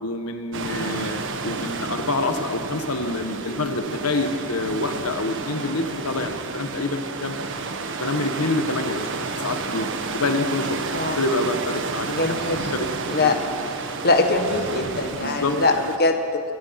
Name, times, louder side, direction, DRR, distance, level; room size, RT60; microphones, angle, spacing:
voice 1, 0.0-7.4 8.0-9.1 9.4-9.9 10.1-10.8 11.1-12.3 12.7-12.9 13.1-13.4 15.1-15.5, left 2 dB, 75° left, 7 dB, 1.5 m, -27 dB
sound 1, 0.5-16.0, right 3 dB, 60° right, 1.5 m, -31 dB
voice 2, 12.1-12.7 13.1-13.4 14.0-16.4, left 3 dB, 45° left, 5 dB, 1.5 m, -22 dB
27.0 x 19.0 x 6.0 m, 2.4 s
head